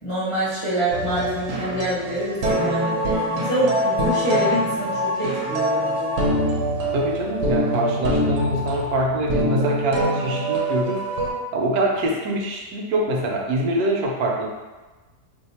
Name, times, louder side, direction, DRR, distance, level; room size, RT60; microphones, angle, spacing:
voice 1, 0.0-6.1, right 1 dB, 30° left, -11 dB, 0.7 m, -26 dB
sound 1, 0.9-11.3, equal, 60° right, 0.9 m, -24 dB
voice 2, 6.9-11.0 11.5-14.5, right 1 dB, 75° right, 0 dB, 1.1 m, -24 dB
2.8 x 2.2 x 4.1 m, 1.2 s
omnidirectional pair, 1.6 m